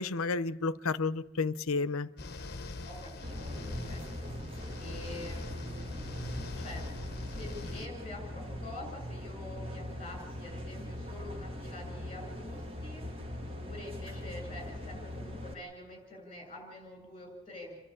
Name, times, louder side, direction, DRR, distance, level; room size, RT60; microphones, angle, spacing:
voice 1, 0.0-2.1, left 4 dB, 85° left, 0.7 m, -31 dB
sound 1, 2.2-7.9, left 2 dB, 50° left, 1.1 m, -42 dB
voice 2, 2.8-4.3 4.8-6.1 6.6-6.8 7.2-13.0 13.7-17.8, left 1 dB, 25° left, 7.3 m, -46 dB
sound 2, 3.2-15.5, left 1 dB, 25° right, 1.8 m, -41 dB
29.5 x 11.0 x 8.8 m
head